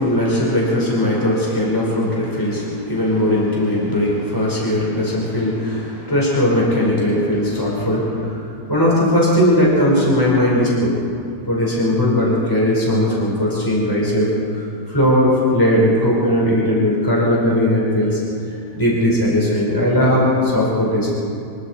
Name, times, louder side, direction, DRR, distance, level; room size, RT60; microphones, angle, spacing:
voice 1, 0.0-10.9 11.5-14.3 14.6-18.2 18.5-21.1, left 1 dB, 10° left, -5 dB, 5.0 m, -18 dB
26.0 x 23.5 x 4.6 m, 2.5 s
omnidirectional pair, 1.8 m